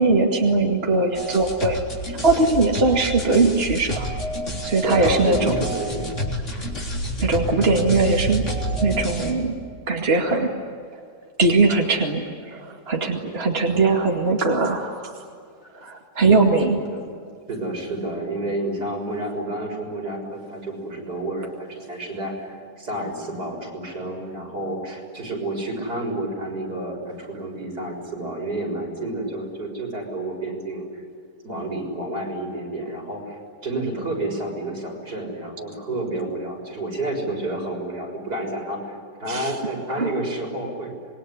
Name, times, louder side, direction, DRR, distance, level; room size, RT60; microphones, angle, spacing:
voice 1, 0.0-1.8 2.2-4.1 4.6-5.6 7.2-8.4 8.8-9.6 9.9-10.5 11.4-12.2 12.5-15.1 15.8-16.8 39.3-39.5 40.0-40.1, right 3 dB, 40° right, 1 dB, 2.6 m, -20 dB
sound 1, 1.1-9.3, equal, 45° left, 4.1 m, -28 dB
voice 2, 4.8-6.1 16.8-17.0 17.5-31.0 31.4-40.9, right 1 dB, 75° right, -1 dB, 7.1 m, -30 dB
27.0 x 22.0 x 9.9 m, 2.3 s
omnidirectional pair, 1.7 m